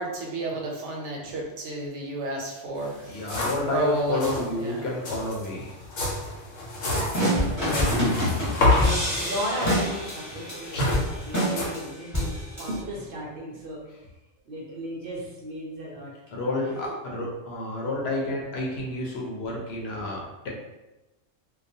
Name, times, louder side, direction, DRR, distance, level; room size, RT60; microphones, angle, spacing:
voice 1, 0.0-3.3 3.7-4.8, right 2 dB, 80° right, -1 dB, 1.0 m, -31 dB
sound 1, 2.8-2.9 3.1-3.7 4.0-4.4 5.0-11.7, left 2 dB, 90° left, 1.0 m, -28 dB
voice 2, 3.0-5.7 13.9-14.0 16.3-20.5, left 2 dB, 65° left, -2 dB, 0.8 m, -30 dB
voice 3, 6.8-8.2 8.5-13.8 14.5-16.9, right 1 dB, 60° right, -3 dB, 0.6 m, -36 dB
sound 2, 7.1-12.8, equal, 15° left, 0.9 m, -27 dB
2.3 x 2.3 x 2.6 m, 1.0 s
omnidirectional pair, 1.2 m